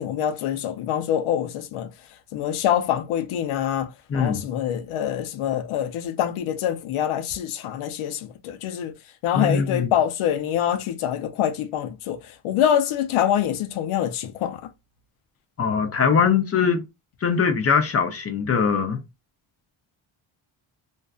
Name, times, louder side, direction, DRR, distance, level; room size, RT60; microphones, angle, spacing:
voice 1, 0.0-1.9 2.3-8.9 9.2-14.6, left 10 dB, 80° left, 0.6 m, -25 dB
voice 2, 4.1-4.4 9.3-9.9 15.6-16.8 17.2-19.0, left 6 dB, 30° left, 0.4 m, -21 dB
2.5 x 2.3 x 2.3 m
cardioid pair, 140°, 49 cm